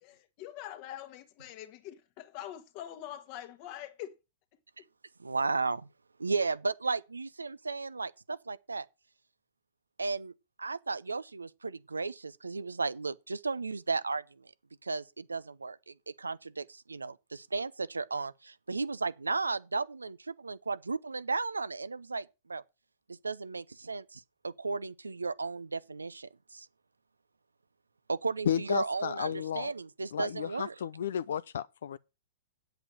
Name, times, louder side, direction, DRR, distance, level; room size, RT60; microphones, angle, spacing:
voice 1, 0.0-4.1, left 12 dB, 45° left, 1.7 m, -44 dB
voice 2, 5.2-5.9 6.2-8.9 10.0-10.3 10.6-14.5 14.8-22.6 23.1-26.7 28.1-30.7, right 4 dB, 85° right, 0.6 m, -34 dB
voice 3, 28.5-29.7 30.1-32.0, left 9 dB, 65° left, 0.5 m, -33 dB
8.5 x 7.9 x 6.3 m
figure-of-eight pair, 110°, 0 cm